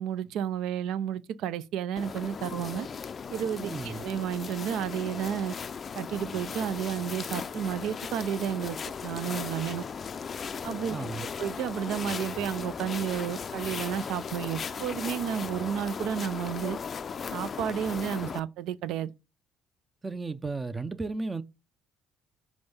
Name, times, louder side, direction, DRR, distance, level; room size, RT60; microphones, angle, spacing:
voice 1, 0.0-2.9 3.3-5.6 5.9-8.8 9.0-9.8 10.6-11.0 11.4-16.8 17.3-19.1, right 9 dB, 75° right, 0.4 m, -32 dB
sound 1, 2.0-18.4, left 6 dB, 40° left, 0.4 m, -37 dB
voice 2, 3.6-4.0 10.9-11.3 20.0-21.4, right 3 dB, 25° right, 0.5 m, -34 dB
5.3 x 3.4 x 5.4 m
supercardioid pair, 80°, 0 cm